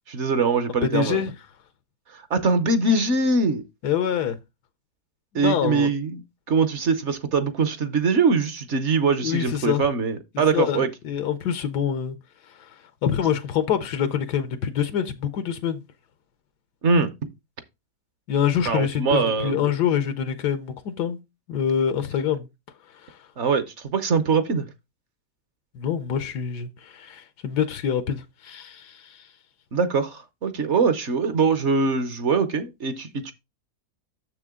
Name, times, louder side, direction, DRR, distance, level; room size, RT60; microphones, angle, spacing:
voice 1, 0.1-1.2 2.1-3.6 5.3-6.2 6.5-10.9 16.8-17.3 18.6-19.6 23.4-24.7 29.7-33.3, right 4 dB, 55° right, 1.0 m, -22 dB
voice 2, 0.8-1.3 3.8-4.4 5.3-5.9 9.2-9.8 10.5-12.2 12.5-12.7 13.0-15.8 18.3-21.2 21.5-22.5 23.0-23.2 25.7-29.3, left 8 dB, 85° left, 1.4 m, -25 dB
7.0 x 6.7 x 3.6 m
omnidirectional pair, 1.7 m